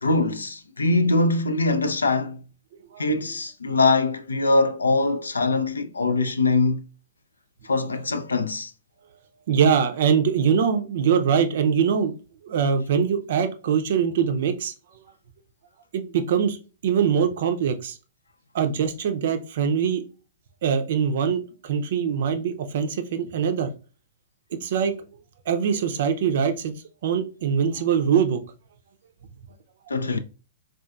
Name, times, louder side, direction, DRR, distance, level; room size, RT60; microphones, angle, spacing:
voice 1, 0.0-2.4 3.0-6.8 7.6-8.7 29.9-30.2, left 3 dB, 75° left, 0.4 m, -22 dB
voice 2, 9.5-12.1 12.4-14.7 15.9-16.6 16.8-18.0 18.5-20.0 20.6-23.7 24.5-24.9 25.5-26.7 27.0-28.4, right 7 dB, 55° right, 0.5 m, -23 dB
4.0 x 2.4 x 2.4 m
figure-of-eight pair, 110°, 0 cm